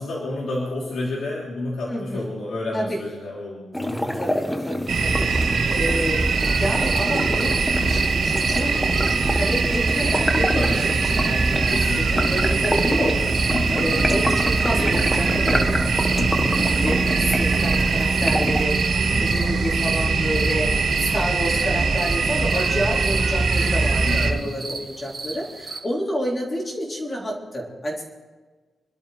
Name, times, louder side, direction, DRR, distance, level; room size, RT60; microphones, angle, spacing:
voice 1, 0.0-4.3 10.5-10.9 11.3-12.8 13.5-13.9 16.1-16.7 19.1-19.6 24.0-24.5, left 2 dB, 75° left, -5 dB, 3.4 m, -31 dB
voice 2, 1.9-2.3 2.7-3.0 4.1-10.9 11.2-18.8 19.2-28.0, equal, 20° left, -2 dB, 3.4 m, -29 dB
sound 1, 3.7-18.6, left 1 dB, 5° left, 0.9 m, -28 dB
sound 2, 4.9-24.3, right 4 dB, 80° right, 2.5 m, -22 dB
sound 3, 6.3-25.8, right 3 dB, 30° right, 2.1 m, -36 dB
27.5 x 12.5 x 3.4 m, 1.4 s
wide cardioid pair, 165°, 0 cm